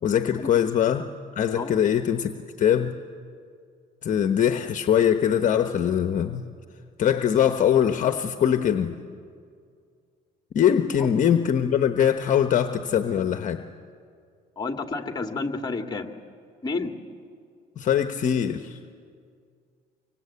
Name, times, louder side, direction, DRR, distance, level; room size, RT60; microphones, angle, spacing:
voice 1, 0.0-1.1 1.4-3.0 4.0-6.5 7.0-9.0 10.5-13.6 17.8-18.8, left 9 dB, 50° left, 8 dB, 1.1 m, -22 dB
voice 2, 14.6-16.1 16.6-16.9, left 3 dB, 25° left, 5 dB, 2.1 m, -30 dB
25.0 x 24.5 x 8.4 m, 2.2 s
cardioid pair, 110°, 17 cm